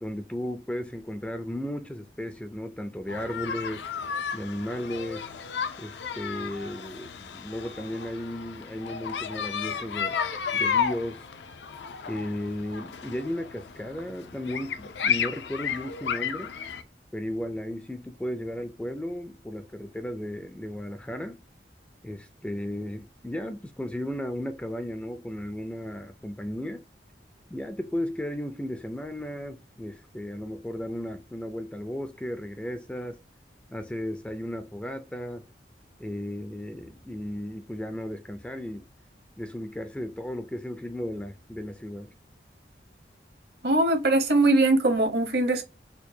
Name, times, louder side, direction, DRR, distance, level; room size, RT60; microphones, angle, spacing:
voice 1, 0.0-3.8 4.3-5.3 5.8-10.2 10.5-11.2 12.1-16.5 17.1-21.4 22.0-26.8 27.5-33.2 33.7-35.5 36.0-38.8 39.4-42.1, left 1 dB, 5° left, 0.3 m, -35 dB
sound 1, 3.1-16.8, left 7 dB, 85° left, 0.5 m, -33 dB
voice 2, 43.6-45.6, right 2 dB, 65° right, 0.9 m, -21 dB
4.5 x 2.2 x 2.7 m
head